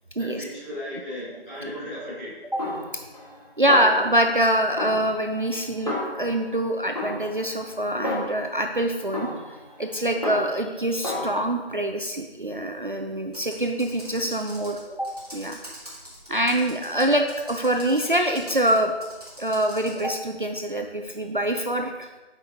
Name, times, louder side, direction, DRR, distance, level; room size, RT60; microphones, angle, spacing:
voice 1, 0.2-2.3, left 1 dB, 15° left, -15 dB, 2.0 m, -36 dB
Snare drum, 2.6-3.4 3.7-4.4 4.8-6.6 7.0-8.6 9.1-10.7 11.0-11.3, left 1 dB, 35° left, 1.8 m, -32 dB
voice 2, 3.6-15.6 16.3-18.9 19.4-22.1, right 1 dB, 55° right, 4 dB, 0.4 m, -25 dB
Computer keyboard, 13.3-20.1, equal, 40° right, 1.8 m, -44 dB
8.0 x 5.2 x 2.8 m, 1.1 s
figure-of-eight pair, 175°, 32 cm